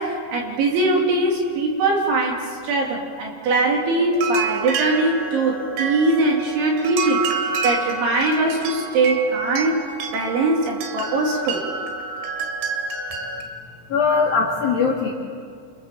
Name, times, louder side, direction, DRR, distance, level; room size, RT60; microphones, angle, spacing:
voice 1, 0.0-7.3 7.6-9.8 10.1-11.7, right 2 dB, 70° right, -1 dB, 4.9 m, -21 dB
sound 1, 4.1-13.4, right 5 dB, 90° right, 4.9 m, -29 dB
voice 2, 13.9-15.1, left 5 dB, 50° left, -4 dB, 3.6 m, -20 dB
29.0 x 26.5 x 7.3 m, 2.1 s
omnidirectional pair, 5.9 m